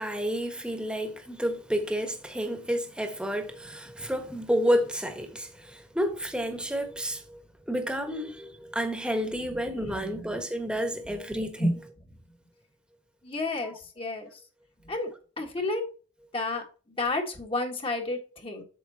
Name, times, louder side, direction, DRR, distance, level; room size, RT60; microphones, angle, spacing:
voice 1, 0.0-7.4 7.7-11.7 13.6-13.7, equal, 5° right, 1.4 m, -30 dB
voice 2, 9.9-10.2 11.6-11.8 13.2-14.3 14.9-15.8 16.3-16.7 17.0-18.6, left 2 dB, 30° left, 1.7 m, -31 dB
8.4 x 6.8 x 2.9 m
head